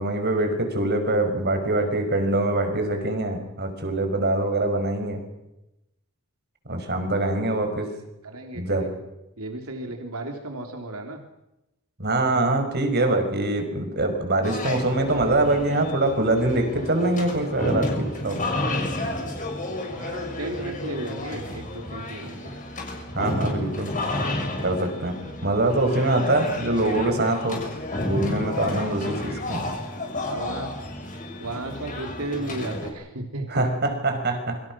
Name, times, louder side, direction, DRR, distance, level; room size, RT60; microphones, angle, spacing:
voice 1, 0.0-5.2 6.7-7.9 8.5-8.9 12.0-18.4 23.1-23.9 24.6-25.1 25.4-27.6 28.0-29.6 33.5-34.6, right 2 dB, 50° right, 6 dB, 5.3 m, -24 dB
voice 2, 8.2-8.9 9.4-11.2 18.4-18.7 19.9-22.5 23.2-23.5 28.6-29.2 30.3-30.7 31.4-33.7, right 2 dB, 80° right, 3 dB, 3.3 m, -35 dB
sound 1, 14.4-32.9, left 2 dB, 35° left, 6.5 m, -31 dB
28.0 x 24.5 x 6.2 m, 0.92 s
head